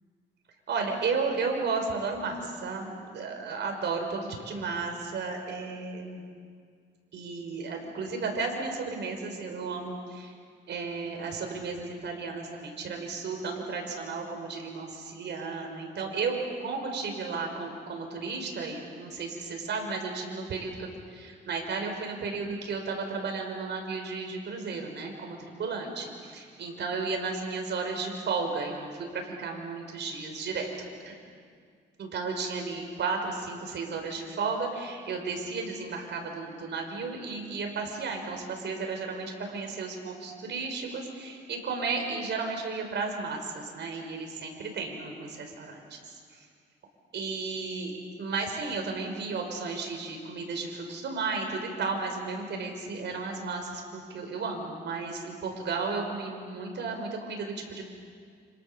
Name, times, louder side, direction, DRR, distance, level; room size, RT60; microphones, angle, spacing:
voice 1, 0.7-6.2 7.1-10.4 10.7-30.7 31.1-31.2 32.0-46.5 47.1-47.9 48.2-57.8, right 4 dB, 60° right, 3 dB, 5.8 m, -33 dB
30.0 x 27.0 x 7.2 m, 2.1 s
cardioid pair, 90°, 20 cm